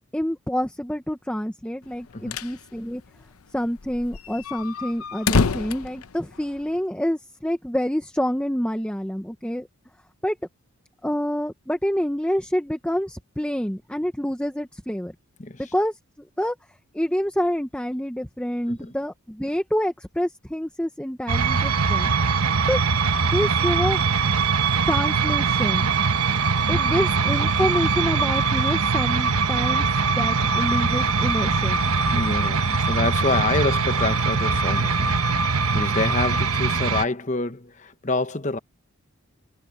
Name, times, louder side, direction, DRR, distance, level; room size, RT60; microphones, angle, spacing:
voice 1, 0.1-3.0 3.5-9.7 10.2-10.4 11.0-15.1 15.6-16.0 16.4-16.6 16.9-22.1 22.7-22.8 23.3-24.0 24.9-25.9 26.7-29.9 30.1-31.8, equal, 5° left, 0.9 m, -27 dB
sound 1, 1.9-2.6 2.9-3.0 3.2-3.3 3.8-6.8, left 4 dB, 80° left, 0.7 m, -26 dB
sound 2, 21.3-37.0, right 4 dB, 80° right, 1.2 m, -22 dB
voice 2, 32.1-35.2 35.7-38.6, left 2 dB, 35° left, 1.0 m, -27 dB
head